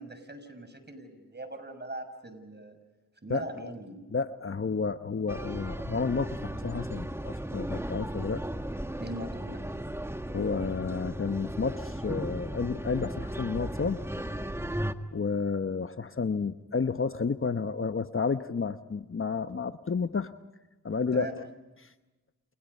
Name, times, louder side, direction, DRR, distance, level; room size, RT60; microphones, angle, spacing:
voice 1, 0.0-2.8 3.2-4.0 9.0-9.6 21.1-21.3, right 1 dB, 30° right, 9 dB, 6.2 m, -40 dB
voice 2, 3.3-3.7 4.1-8.4 10.3-14.0 15.1-20.3 20.8-21.3 21.8-21.9, left 5 dB, 40° left, 10 dB, 1.0 m, -31 dB
sound 1, 5.3-14.9, right 1 dB, 10° right, 1.6 m, -36 dB
30.0 x 29.0 x 5.5 m, 1.1 s
cardioid pair, 45°, 33 cm